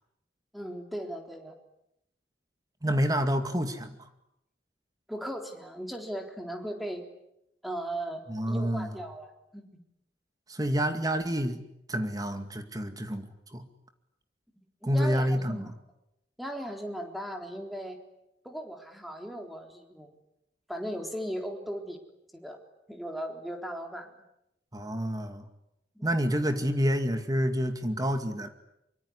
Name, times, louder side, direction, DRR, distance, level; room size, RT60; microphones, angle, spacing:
voice 1, 0.5-1.6 5.1-7.0 7.6-9.6 14.8-15.7 16.4-18.0 18.4-20.1 20.7-22.0 22.4-22.6 22.9-24.1 26.0-26.1, equal, ahead, 3 dB, 3.8 m, -37 dB
voice 2, 2.8-4.1 8.3-8.9 10.5-11.6 11.9-13.6 14.8-15.7 24.7-25.5 26.0-28.5, equal, 20° right, 7 dB, 2.2 m, -28 dB
24.5 x 24.5 x 9.9 m, 0.85 s
head